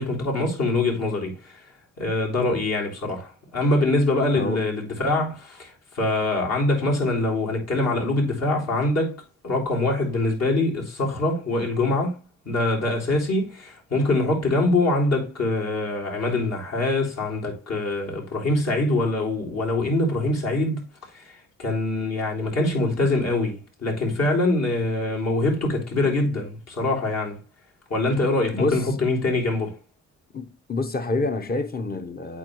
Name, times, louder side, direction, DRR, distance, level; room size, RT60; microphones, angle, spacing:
voice 1, 0.0-1.6 2.0-12.2 12.5-20.8 21.1-27.4 27.9-29.8, left 2 dB, 55° left, 3.7 m, -24 dB
voice 2, 28.5-28.8 30.3-32.4, left 2 dB, 30° left, 1.0 m, -27 dB
8.4 x 4.7 x 3.1 m
cardioid pair, 90°, 30 cm